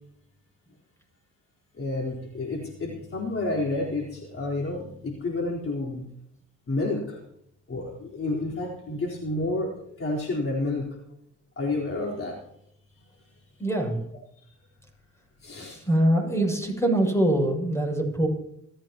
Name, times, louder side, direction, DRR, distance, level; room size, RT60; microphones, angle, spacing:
voice 1, 1.7-6.1 6.7-7.2 7.7-11.0 11.6-12.4 14.4-14.5 15.4-15.8, left 2 dB, 45° left, -2 dB, 4.1 m, -30 dB
voice 2, 13.6-14.0 15.7-18.3, right 1 dB, 10° left, 2 dB, 7.1 m, -23 dB
25.0 x 14.5 x 3.0 m, 0.73 s
cardioid pair, 90°, 30 cm